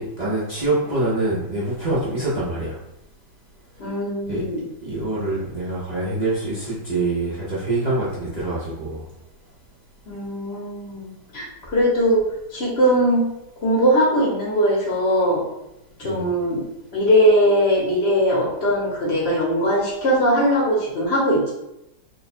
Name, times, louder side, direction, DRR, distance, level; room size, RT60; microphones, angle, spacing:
voice 1, 0.0-2.8 4.3-4.4 4.8-9.1 16.0-16.3, right 2 dB, 65° right, -9 dB, 0.4 m, -25 dB
voice 2, 3.8-4.6 10.1-12.2 12.5-13.3 13.6-15.4 16.0-16.6 16.9-21.5, equal, 45° left, -4 dB, 1.0 m, -20 dB
2.9 x 2.2 x 4.1 m, 0.88 s
omnidirectional pair, 1.9 m